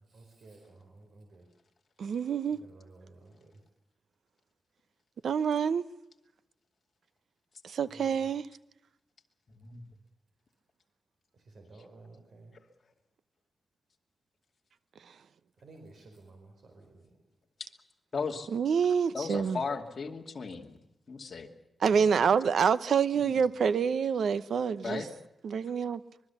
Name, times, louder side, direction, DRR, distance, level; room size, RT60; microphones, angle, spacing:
voice 1, 0.1-1.4 2.6-3.4 7.9-8.1 11.5-12.5 15.6-17.0 21.9-22.2, right 3 dB, 65° right, 4.6 m, -51 dB
voice 2, 2.0-2.6 5.2-5.8 7.6-8.5 18.5-19.6 21.8-25.0 25.4-26.0, right 6 dB, 80° right, 0.9 m, -27 dB
voice 3, 9.5-9.8 18.1-18.5 19.1-20.8 21.1-21.5 23.3-23.4 24.8-25.1, left 5 dB, 45° left, 2.4 m, -36 dB
25.0 x 22.0 x 7.1 m
wide cardioid pair, 155°, 0 cm